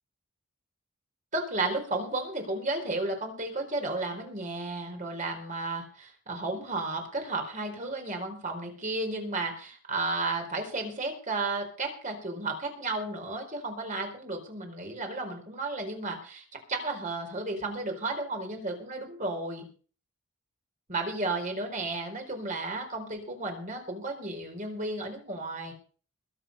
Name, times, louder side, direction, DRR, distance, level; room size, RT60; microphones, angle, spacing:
voice 1, 1.3-16.4 16.7-19.7 20.9-25.7, right 2 dB, 35° right, 3 dB, 4.4 m, -33 dB
21.5 x 7.7 x 5.5 m, 0.41 s
head